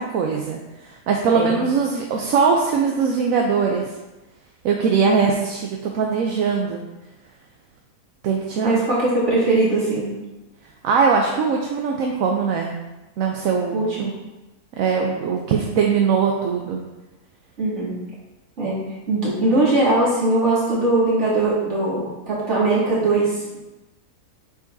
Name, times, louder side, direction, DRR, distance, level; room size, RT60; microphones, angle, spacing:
voice 1, 0.0-3.9 4.6-6.8 8.2-8.8 10.8-12.7 13.2-14.1 14.8-16.8, right 5 dB, 65° right, 1 dB, 1.0 m, -21 dB
voice 2, 8.6-10.1 13.7-14.1 17.6-18.0 18.6-18.8 19.1-23.6, right 2 dB, 50° right, -8 dB, 2.3 m, -20 dB
8.0 x 4.9 x 2.7 m, 1.1 s
omnidirectional pair, 1.6 m